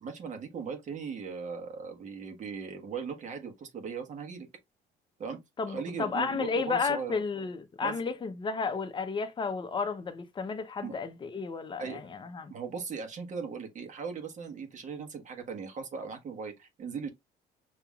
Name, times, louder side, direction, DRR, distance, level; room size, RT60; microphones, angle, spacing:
voice 1, 0.0-4.5 5.2-5.4 5.7-7.1 7.8-8.1 10.8-11.0 11.8-12.0 12.5-17.1, right 5 dB, 45° right, 1.3 m, -38 dB
voice 2, 5.6-12.5, left 5 dB, 30° left, 0.8 m, -32 dB
5.5 x 2.9 x 2.4 m
cardioid pair, 110°, 17 cm